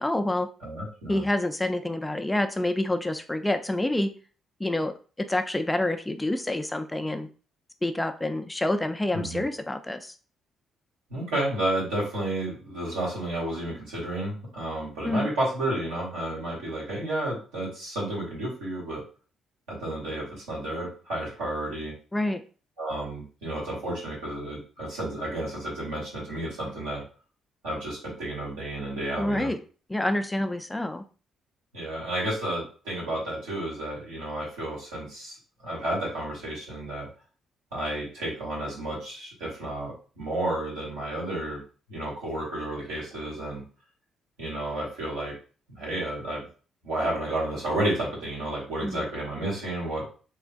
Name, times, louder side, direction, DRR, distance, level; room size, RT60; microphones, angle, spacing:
voice 1, 0.0-0.5 1.1-4.1 4.6-4.9 5.3-7.3 7.8-10.1 15.1-15.3 22.1-22.4 29.2-29.6 29.9-31.0 48.8-49.0, left 1 dB, 15° left, 8 dB, 0.4 m, -27 dB
voice 2, 0.6-1.2 9.1-9.4 11.1-19.0 19.7-21.9 22.8-27.0 27.6-29.5 31.7-35.4 35.6-37.1 37.7-41.6 41.9-43.6 44.4-45.3 45.7-46.5 46.8-50.0, right 1 dB, 80° right, -6 dB, 1.7 m, -31 dB
3.3 x 3.1 x 2.2 m, 0.38 s
hypercardioid pair, 45°, 0 cm